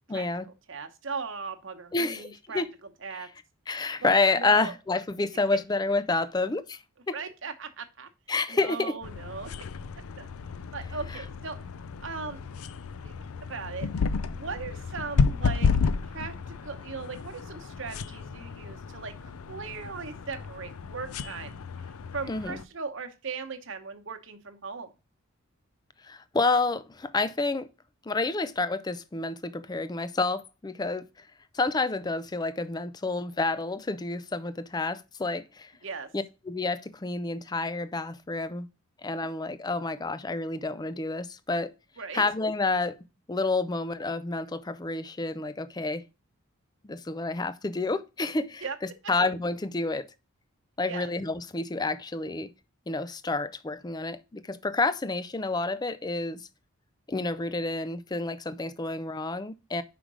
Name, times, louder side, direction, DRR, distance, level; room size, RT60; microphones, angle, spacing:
voice 1, 0.1-0.5 1.9-2.7 3.1-3.3 3.7-7.2 8.3-8.9 11.1-11.2 22.3-22.6 26.0-27.7 28.1-31.3 31.5-35.7 36.1-38.7 39.0-41.7 42.1-43.0 43.3-46.0 46.9-48.6 49.1-50.1 50.8-52.5 52.9-56.5 57.1-59.8, left 3 dB, 20° left, 0.4 m, -29 dB
voice 2, 0.7-2.6 3.0-3.3 4.0-4.7 5.3-5.4 7.1-8.1 8.5-9.5 10.1-10.3 10.7-11.6 12.0-12.4 13.0-13.1 13.5-13.9 14.3-15.7 16.0-24.9 35.8-36.1 42.0-42.2 48.6-48.8 50.9-51.1, right 5 dB, 55° right, 1.0 m, -38 dB
sound 1, 9.0-22.6, left 5 dB, 80° left, 0.5 m, -32 dB
5.2 x 5.0 x 6.1 m
head